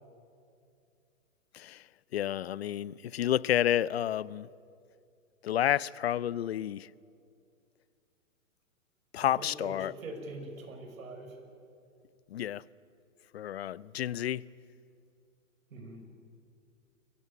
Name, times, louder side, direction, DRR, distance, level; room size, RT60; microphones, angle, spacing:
voice 1, 2.1-4.5 5.4-6.9 9.1-9.9 12.3-12.6 13.3-14.5, left 11 dB, 50° left, 0.5 m, -30 dB
voice 2, 9.2-11.4 15.7-16.0, right 2 dB, 90° right, 5.8 m, -43 dB
23.0 x 17.5 x 9.8 m
hypercardioid pair, 170°, 39 cm